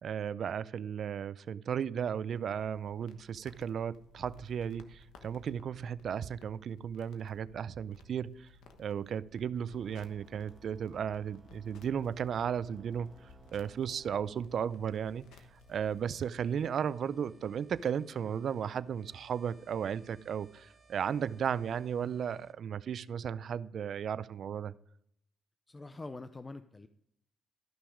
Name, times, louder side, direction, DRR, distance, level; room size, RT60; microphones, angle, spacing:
voice 1, 0.0-8.5 8.8-13.1 13.5-15.4 15.7-24.7, right 8 dB, 60° right, 0.4 m, -35 dB
sound 1, 2.3-16.3, left 4 dB, 85° left, 1.1 m, -59 dB
sound 2, 9.7-22.5, right 3 dB, 20° right, 1.2 m, -61 dB
voice 2, 25.7-26.9, left 2 dB, 20° left, 0.5 m, -45 dB
13.0 x 6.0 x 5.0 m
cardioid pair, 90°, 0 cm